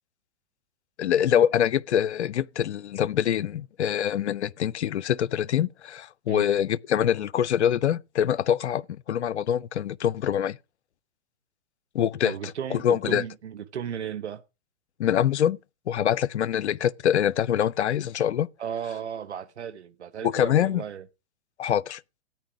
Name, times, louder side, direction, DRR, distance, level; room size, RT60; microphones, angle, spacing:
voice 1, 1.0-10.6 11.9-12.3 12.7-13.2 15.0-15.6 15.9-18.5 20.2-20.8 21.6-22.0, left 9 dB, 85° left, 0.6 m, -24 dB
voice 2, 12.2-14.4 18.6-21.0, right 8 dB, 90° right, 0.9 m, -35 dB
13.5 x 9.7 x 4.8 m
hypercardioid pair, 125°, 33 cm